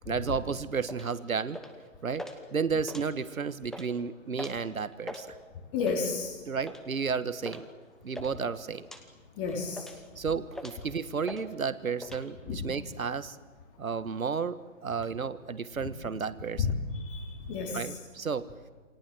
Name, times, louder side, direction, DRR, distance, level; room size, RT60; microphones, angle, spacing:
voice 1, 0.1-1.6 2.0-5.4 6.5-7.7 8.0-8.9 10.2-13.4 13.8-16.7 17.7-18.5, right 5 dB, 85° right, 14 dB, 1.5 m, -32 dB
sound 1, 0.9-1.1 1.5-1.8 2.1-2.4 2.8-3.3 3.6-3.9 4.4-4.6 4.9-5.2 5.8-6.1 6.7-6.9 7.4-7.6 7.9-8.3 8.8-9.0 9.5-10.1 10.5-10.9 11.3-11.5 11.7-12.2, left 1 dB, ahead, 1.1 m, -42 dB
voice 2, 5.7-6.3 9.4-9.8 12.5-12.6 16.6-16.7 17.0-17.9, left 5 dB, 25° left, -1 dB, 3.7 m, -31 dB
28.5 x 25.5 x 7.7 m, 1.3 s
hypercardioid pair, 150°, 41 cm